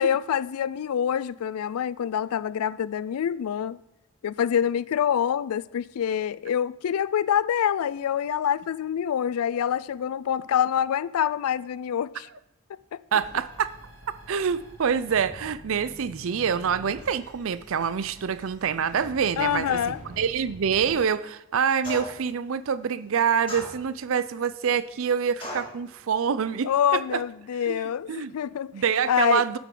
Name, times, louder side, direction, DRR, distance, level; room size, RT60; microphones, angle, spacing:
voice 1, 0.0-3.8 4.2-12.3 12.7-13.0 19.4-20.0 26.6-28.7 29.1-29.4, left 9 dB, 85° left, 0.3 m, -26 dB
voice 2, 13.1-13.7 14.3-19.8 20.2-27.2 27.7-27.8 28.1-28.3 28.7-29.6, right 7 dB, 70° right, 0.4 m, -26 dB
sound 1, 13.2-20.9, right 1 dB, 85° right, 2.9 m, -46 dB
sound 2, 21.8-22.3 23.5-24.1 25.4-25.8, left 1 dB, 25° left, 2.3 m, -36 dB
8.6 x 8.2 x 3.8 m
head